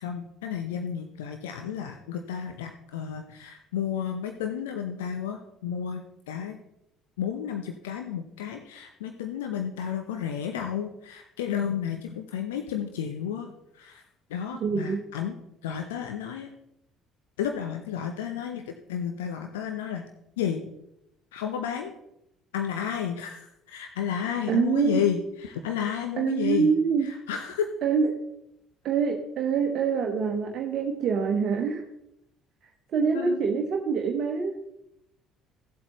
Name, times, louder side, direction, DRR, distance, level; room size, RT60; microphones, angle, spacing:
voice 1, 0.0-6.6 7.2-13.5 13.8-14.0 14.3-15.4 15.6-16.5 17.4-20.0 20.4-20.6 21.3-21.9 22.5-26.7 27.0-27.7 33.1-33.4, left 8 dB, 75° left, 5 dB, 0.8 m, -32 dB
voice 2, 14.6-15.0 24.5-25.0 26.2-27.1 27.8-28.2 28.8-31.8 32.9-34.6, right 6 dB, 50° right, 2 dB, 1.1 m, -25 dB
15.5 x 7.8 x 3.1 m, 0.83 s
figure-of-eight pair, 55°, 0 cm